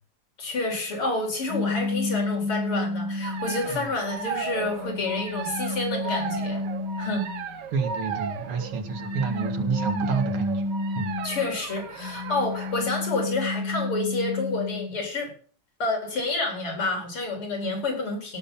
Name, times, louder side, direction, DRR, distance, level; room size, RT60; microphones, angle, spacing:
voice 1, 0.4-6.6 7.0-7.3 11.2-15.3 15.8-18.4, left 2 dB, 85° left, 5.5 m, -29 dB
sound 1, 1.5-3.7 4.3-7.4 8.6-11.6 12.0-15.0, left 3 dB, 50° left, 1.6 m, -31 dB
sound 2, 3.2-12.9, right 6 dB, 55° right, 1.7 m, -35 dB
voice 2, 7.7-10.6 10.9-11.2, right 5 dB, 85° right, 2.8 m, -29 dB
16.5 x 7.0 x 5.8 m
omnidirectional pair, 2.4 m